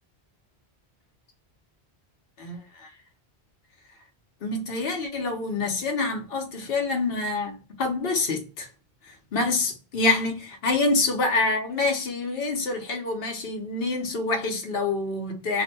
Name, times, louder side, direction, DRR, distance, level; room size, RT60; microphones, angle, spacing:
voice 1, 2.4-2.9 4.4-8.7 9.3-15.6, left 3 dB, 65° left, 1.0 m, -26 dB
2.6 x 2.2 x 4.0 m
omnidirectional pair, 1.1 m